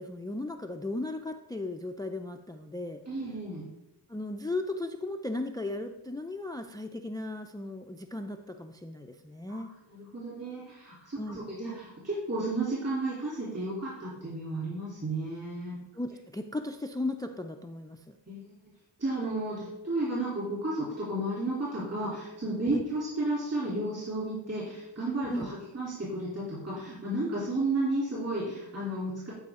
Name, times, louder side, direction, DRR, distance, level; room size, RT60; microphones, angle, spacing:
voice 1, 0.0-3.0 4.1-9.7 11.2-11.4 15.9-18.2 22.7-22.8 25.3-25.5, left 2 dB, 10° left, 6 dB, 0.3 m, -36 dB
voice 2, 3.1-3.7 9.5-9.6 9.9-15.8 18.3-18.5 19.0-29.3, right 2 dB, 35° right, -8 dB, 3.2 m, -33 dB
12.0 x 4.9 x 3.7 m, 0.93 s
wide cardioid pair, 110°, 41 cm